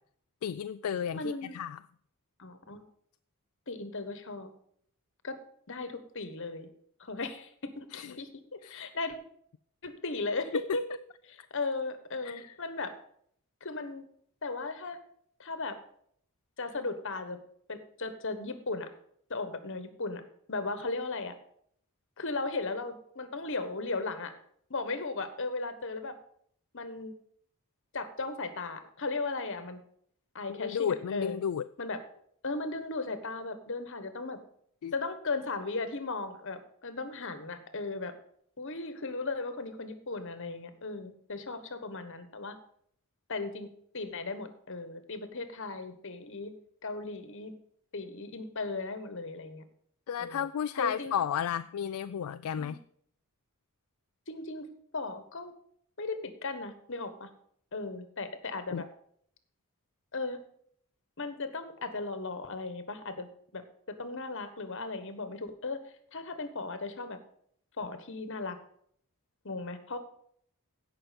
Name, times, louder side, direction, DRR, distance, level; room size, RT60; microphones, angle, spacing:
voice 1, 0.4-1.8 7.9-8.1 8.6-8.9 12.2-12.5 30.5-31.7 34.8-34.9 50.1-52.8 58.7-58.8, left 8 dB, 75° left, 12 dB, 0.3 m, -33 dB
voice 2, 1.1-1.6 2.4-2.8 3.7-4.5 5.2-5.4 5.7-6.7 7.0-9.2 9.8-11.0 11.2-12.9 13.6-14.1 14.4-15.0 15.4-15.8 16.6-17.4 17.7-18.9 19.3-20.2 20.5-21.3 22.2-24.3 24.7-26.2 26.7-27.1 27.9-29.8 30.3-31.4 31.8-32.0 32.4-34.4 34.9-38.1 38.6-42.6 43.3-43.7 43.9-46.5 46.8-47.5 47.9-49.6 50.2-50.4 50.8-51.2 52.6-52.8 54.3-54.7 54.9-55.5 56.0-57.3 57.7-58.9 60.1-60.4 61.2-63.6 63.9-65.8 66.1-67.2 67.8-68.6 69.4-70.0, left 3 dB, 60° left, 10 dB, 1.3 m, -36 dB
16.0 x 5.8 x 5.2 m, 0.64 s
head